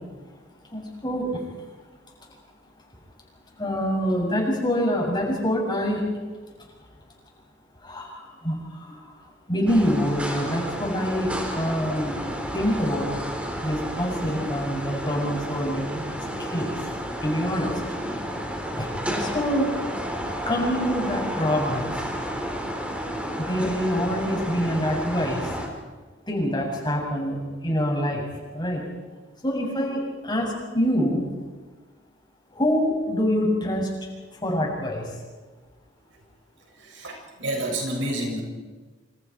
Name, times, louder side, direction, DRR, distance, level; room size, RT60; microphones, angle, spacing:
voice 1, 0.7-1.4 2.2-2.3 3.6-6.2 7.8-9.2 9.5-12.2 12.5-13.1 13.6-16.8 17.2-17.8 18.8-19.8 20.5-22.0 23.3-25.5 26.3-28.3 28.5-28.8 29.4-31.2 32.5-34.1 34.4-35.2, equal, 25° left, 0 dB, 7.4 m, -26 dB
sound 1, 9.7-25.7, equal, 5° right, 4.0 m, -31 dB
voice 2, 36.7-38.4, right 1 dB, 70° right, 1 dB, 6.7 m, -30 dB
28.0 x 27.5 x 4.7 m, 1.3 s
head